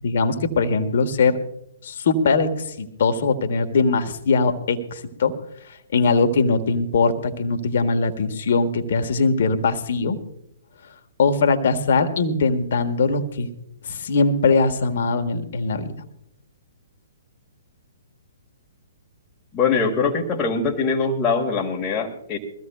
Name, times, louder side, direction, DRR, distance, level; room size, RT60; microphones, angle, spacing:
voice 1, 0.0-1.4 1.8-5.3 5.9-10.2 11.2-13.5 13.8-15.9, left 4 dB, 50° left, 8 dB, 1.5 m, -21 dB
voice 2, 19.5-22.4, left 5 dB, 20° left, -3 dB, 1.8 m, -22 dB
23.0 x 15.5 x 2.4 m, 0.80 s
figure-of-eight pair, 120°, 0 cm